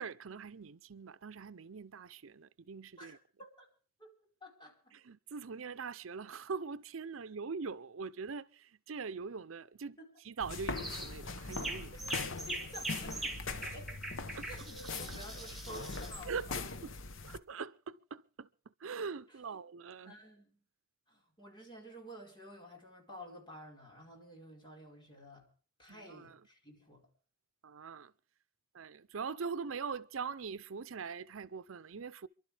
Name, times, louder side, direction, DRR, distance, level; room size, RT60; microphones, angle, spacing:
voice 1, 0.0-3.2 4.9-10.0 10.2-11.9 14.3-14.5 15.1-15.2 16.2-16.5 16.8-16.9 17.2-18.5 18.8-20.1 25.9-26.4 27.6-28.1 28.7-32.3, right 5 dB, 85° right, 0.6 m, -42 dB
voice 2, 3.0-3.7 4.0-4.1 4.4-5.0 10.0-10.1 12.5-14.1 14.4-16.7 19.5-19.6 20.0-20.6 21.1-25.5 25.8-27.0, equal, 25° left, 4.7 m, -52 dB
sound 1, 10.4-17.4, left 4 dB, 75° left, 1.0 m, -41 dB
sound 2, 10.7-11.1 11.5-16.2, right 2 dB, ahead, 2.3 m, -42 dB
29.5 x 12.0 x 3.4 m
head